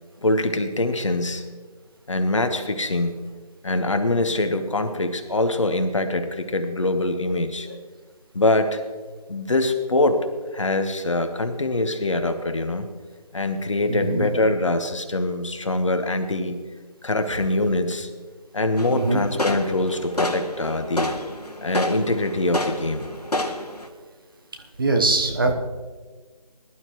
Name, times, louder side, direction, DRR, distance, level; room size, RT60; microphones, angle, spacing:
voice 1, 0.2-1.4 2.1-3.1 3.6-7.7 8.3-8.8 9.3-10.2 10.5-12.9 13.3-16.6 17.0-18.1 18.5-21.1 21.6-23.1, left 2 dB, 50° left, 8 dB, 1.3 m, -23 dB
voice 2, 13.9-14.3 18.9-19.2 24.8-25.5, right 3 dB, 35° right, 3 dB, 1.1 m, -22 dB
sound 1, 18.8-23.9, left 1 dB, 80° left, 1.7 m, -29 dB
20.5 x 11.5 x 3.1 m, 1.4 s
figure-of-eight pair, 160°, 20 cm